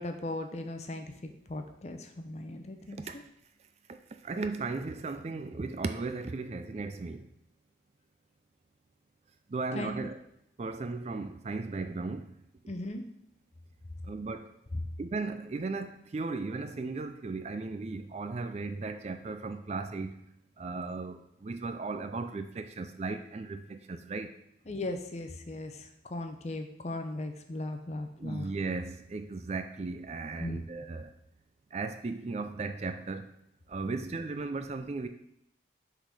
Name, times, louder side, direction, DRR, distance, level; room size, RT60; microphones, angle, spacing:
voice 1, 0.0-3.0 9.7-10.0 12.7-13.0 14.7-14.8 24.7-28.5 30.4-30.6 33.9-34.1, left 2 dB, 35° left, 6 dB, 0.6 m, -38 dB
voice 2, 4.2-7.3 9.5-10.2 10.6-12.3 14.0-14.5 15.0-20.1 20.6-24.4 28.2-31.1 31.7-33.3 33.7-35.1, right 3 dB, 35° right, 8 dB, 0.4 m, -36 dB
6.5 x 3.9 x 4.8 m, 0.77 s
head